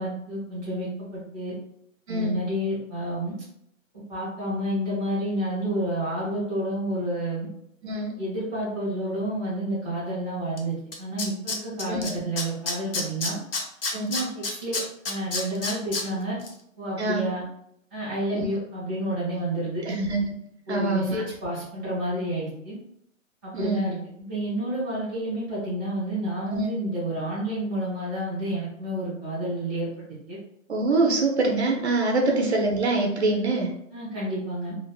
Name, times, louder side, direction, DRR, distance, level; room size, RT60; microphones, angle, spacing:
voice 1, 0.0-1.5 2.1-3.3 4.1-7.5 8.2-13.4 14.1-14.8 15.0-16.4 16.8-17.4 17.9-20.0 20.7-22.8 23.4-24.0 24.3-30.4 32.2-32.5 33.9-34.7, right 1 dB, 5° right, -10 dB, 0.6 m, -30 dB
voice 2, 2.1-2.4 7.8-8.2 11.9-12.1 13.9-14.1 17.0-17.2 18.3-18.5 19.9-20.2 20.7-21.2 23.5-23.8 26.5-26.7 30.7-33.7, right 2 dB, 55° right, 1 dB, 0.5 m, -24 dB
Tools, 10.6-10.7 10.9-12.1 12.4-16.0 16.4-16.5, left 3 dB, 45° left, 0.5 m, -28 dB
2.7 x 2.1 x 2.3 m, 0.72 s
hypercardioid pair, 170°, 40 cm